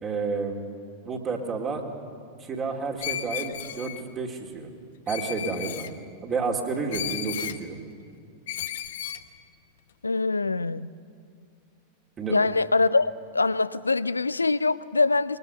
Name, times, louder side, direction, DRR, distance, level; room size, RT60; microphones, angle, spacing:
voice 1, 0.0-0.6 1.0-1.8 2.4-4.7 5.1-5.9 6.2-7.8 12.2-12.4, right 4 dB, 25° right, 1 dB, 2.6 m, -30 dB
Screech, 3.0-4.0 5.1-5.9 6.9-7.6 8.5-9.2, left 11 dB, 60° left, 0.9 m, -34 dB
voice 2, 10.0-10.9 12.3-15.4, left 3 dB, 80° left, 18 dB, 0.5 m, -24 dB
22.5 x 20.5 x 6.8 m, 2.2 s
figure-of-eight pair, 90°, 0 cm